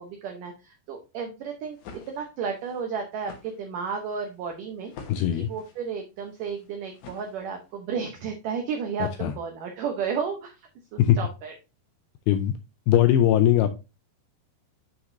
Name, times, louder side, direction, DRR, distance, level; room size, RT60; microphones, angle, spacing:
voice 1, 0.0-1.8 2.1-4.9 5.4-10.6 10.9-11.5, right 6 dB, 80° right, 4 dB, 1.9 m, -33 dB
sound 1, 1.5-7.8, left 5 dB, 65° left, 1.9 m, -49 dB
voice 2, 5.1-5.5 9.2-9.3 11.0-11.2 12.3-12.5 12.9-13.7, left 11 dB, 90° left, 8 dB, 2.2 m, -20 dB
7.6 x 5.8 x 2.6 m, 0.27 s
omnidirectional pair, 5.0 m